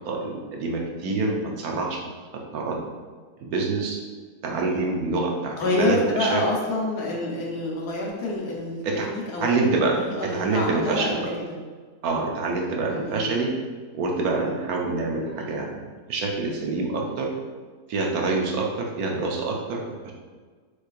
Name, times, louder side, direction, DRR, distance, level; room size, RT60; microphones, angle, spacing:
voice 1, 0.1-2.0 2.5-2.8 3.4-4.0 4.4-6.4 8.8-9.1 9.4-10.0 10.3-11.2 12.0-13.5 13.9-15.7 16.1-17.3 17.9-20.1, right 3 dB, 70° right, 0 dB, 1.1 m, -26 dB
voice 2, 5.6-8.8 9.1-9.5 10.0-11.6 12.9-13.3, left 2 dB, 75° left, -2 dB, 1.5 m, -27 dB
6.4 x 3.2 x 2.4 m, 1.5 s
omnidirectional pair, 1.7 m